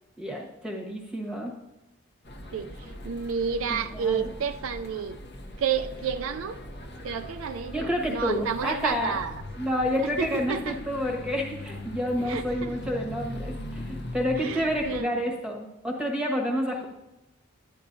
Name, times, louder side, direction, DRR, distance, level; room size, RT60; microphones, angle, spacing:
voice 1, 0.2-1.5 3.7-4.3 7.7-9.2 9.6-16.9, equal, 5° right, 0 dB, 1.1 m, -29 dB
sound 1, 2.2-15.0, left 1 dB, 50° left, 0.8 m, -40 dB
voice 2, 2.5-5.2 5.6-6.6 7.0-9.4 10.0-10.8 12.3-12.8 14.4-15.1, right 6 dB, 70° right, 10 dB, 0.4 m, -31 dB
10.0 x 9.9 x 2.6 m, 0.96 s
head